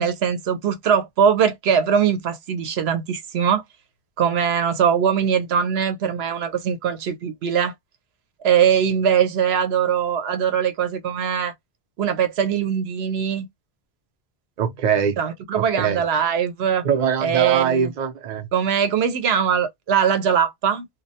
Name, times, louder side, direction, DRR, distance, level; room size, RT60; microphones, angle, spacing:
voice 1, 0.0-3.6 4.2-7.7 8.4-11.5 12.0-13.5 15.2-16.8 17.2-17.9 18.5-20.9, right 8 dB, 85° right, 0.9 m, -21 dB
voice 2, 14.6-15.2 15.5-16.0 16.8-18.5, right 7 dB, 55° right, 0.6 m, -22 dB
2.3 x 2.0 x 2.7 m
omnidirectional pair, 1.0 m